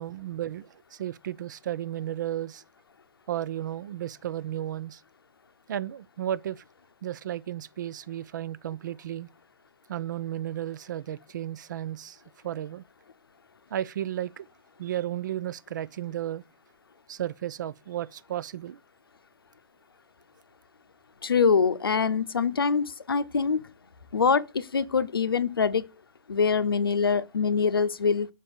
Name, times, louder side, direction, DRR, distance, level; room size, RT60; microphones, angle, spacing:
voice 1, 0.0-2.6 3.3-5.0 5.7-6.6 7.0-9.3 9.9-12.8 13.7-14.5 14.8-16.4 17.1-18.8, right 11 dB, 55° right, 0.5 m, -33 dB
voice 2, 21.2-23.6 24.1-25.9 26.3-28.3, left 5 dB, 80° left, 0.7 m, -24 dB
5.5 x 5.4 x 6.4 m
figure-of-eight pair, 125°, 12 cm